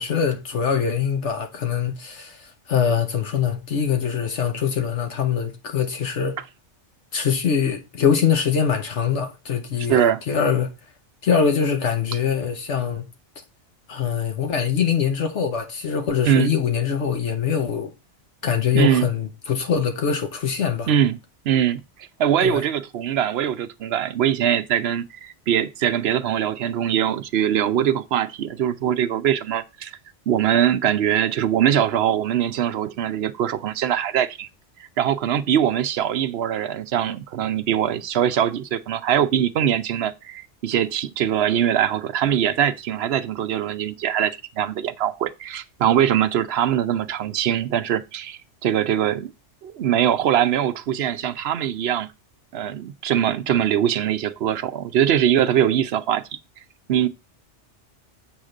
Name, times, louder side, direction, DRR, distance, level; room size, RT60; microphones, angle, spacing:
voice 1, 0.0-6.4 7.1-10.8 11.2-13.1 13.9-17.9 18.4-20.9 22.4-22.6, left 7 dB, 80° left, 1.3 m, -23 dB
voice 2, 9.9-10.2 16.2-16.5 18.7-19.1 20.9-21.2 21.4-21.8 22.2-29.9 30.3-34.5 35.0-49.3 49.6-52.1 52.5-56.2 56.9-57.1, right 10 dB, 65° right, 0.9 m, -22 dB
7.8 x 3.7 x 6.5 m
omnidirectional pair, 1.2 m